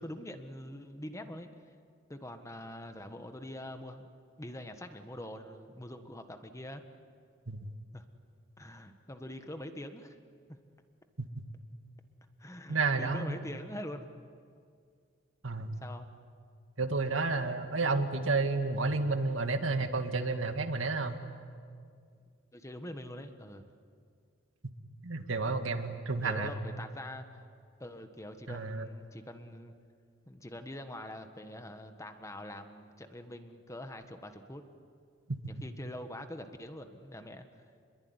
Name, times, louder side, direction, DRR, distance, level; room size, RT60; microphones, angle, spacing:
voice 1, 0.0-1.5 2.1-4.1 4.4-6.8 7.9-8.0 8.6-10.1 10.5-10.6 12.4-14.1 15.8-16.1 22.5-23.6 26.2-27.4 27.8-29.7 30.3-34.6 35.5-37.4, left 1 dB, 15° left, 7 dB, 1.5 m, -44 dB
voice 2, 12.7-13.4 15.4-15.8 16.8-21.3 25.0-26.5 28.5-28.9 35.3-35.4, right 3 dB, 85° right, 7 dB, 1.9 m, -31 dB
28.0 x 22.0 x 9.7 m, 2.2 s
head